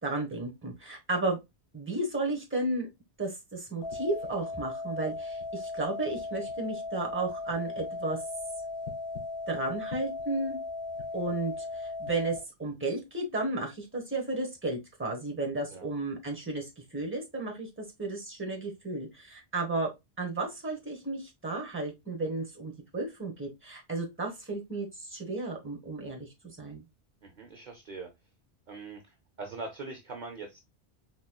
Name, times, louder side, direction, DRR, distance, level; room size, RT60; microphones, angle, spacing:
voice 1, 0.0-1.4 1.7-2.9 3.2-8.2 9.5-10.6 11.1-19.9 20.2-26.8, right 2 dB, 10° right, 1 dB, 1.1 m, -33 dB
sound 1, 3.8-12.4, left 3 dB, 50° left, 1.4 m, -37 dB
voice 2, 27.2-28.1 28.7-29.0 29.4-30.6, right 3 dB, 50° right, 3 dB, 0.7 m, -41 dB
4.2 x 3.6 x 2.2 m, 0.22 s
omnidirectional pair, 1.2 m